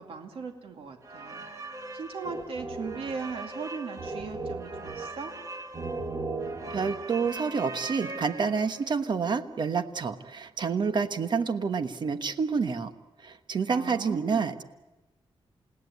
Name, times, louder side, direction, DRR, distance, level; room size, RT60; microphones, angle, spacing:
voice 1, 0.0-1.5 1.9-5.3 13.7-14.6, right 5 dB, 75° right, 4 dB, 2.3 m, -38 dB
sound 1, 1.0-8.9, right 3 dB, 35° right, 2.1 m, -38 dB
voice 2, 6.7-12.9 13.2-14.6, right 5 dB, 50° right, 10 dB, 1.3 m, -28 dB
29.0 x 17.5 x 9.6 m, 1.1 s
wide cardioid pair, 140°, 10 cm